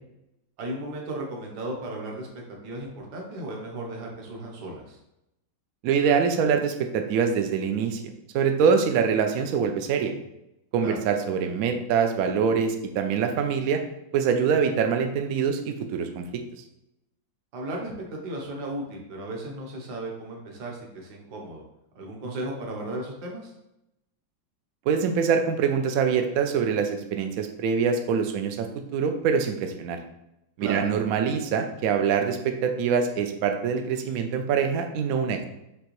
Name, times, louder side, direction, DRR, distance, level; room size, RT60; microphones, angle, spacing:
voice 1, 0.6-5.0 10.8-11.0 17.5-21.6 21.9-23.5 30.6-30.8, right 1 dB, 60° right, -1 dB, 1.5 m, -35 dB
voice 2, 5.8-10.1 10.7-13.8 14.1-16.4 24.9-30.0 30.6-35.4, right 6 dB, 90° right, 5 dB, 0.7 m, -24 dB
5.4 x 2.9 x 3.0 m, 0.86 s
omnidirectional pair, 2.1 m